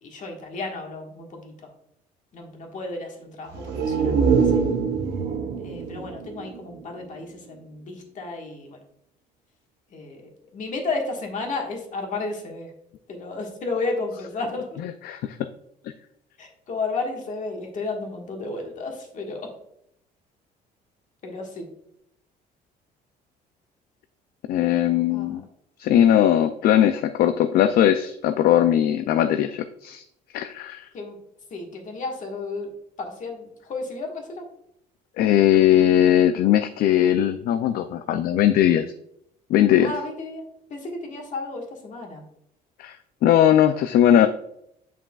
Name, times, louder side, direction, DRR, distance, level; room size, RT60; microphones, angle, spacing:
voice 1, 0.0-1.5 2.3-4.1 4.5-4.6 5.6-8.8 9.9-12.7 13.1-14.8 16.4-19.5 21.2-21.7 25.1-25.4 30.9-31.2 31.5-32.7 33.0-34.5 39.8-40.4 40.7-42.2, left 3 dB, 50° left, 2 dB, 1.6 m, -32 dB
sound 1, 3.5-7.2 7.6-7.7, right 5 dB, 75° right, 0.9 m, -24 dB
voice 2, 14.8-15.4 24.5-25.4 25.8-30.0 30.3-30.9 35.2-38.9 39.5-39.9 42.8-43.0 43.2-44.3, left 11 dB, 65° left, 10 dB, 0.4 m, -19 dB
7.2 x 5.6 x 2.4 m, 0.75 s
cardioid pair, 110°, 17 cm